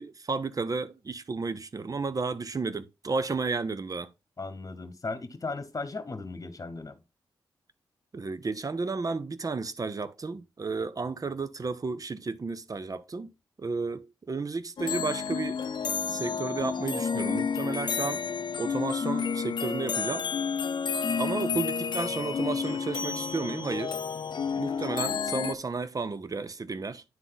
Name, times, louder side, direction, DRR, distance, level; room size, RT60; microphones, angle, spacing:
voice 1, 0.0-4.1 8.1-13.3 13.6-15.6 16.1-18.2 18.6-20.3 21.2-24.0 24.6-27.0, right 4 dB, 40° right, 0.7 m, -32 dB
voice 2, 4.4-7.0, left 3 dB, 40° left, 1.3 m, -36 dB
sound 1, 14.8-25.5, left 6 dB, 60° left, 0.6 m, -30 dB
9.6 x 3.8 x 3.9 m
supercardioid pair, 45°, 9 cm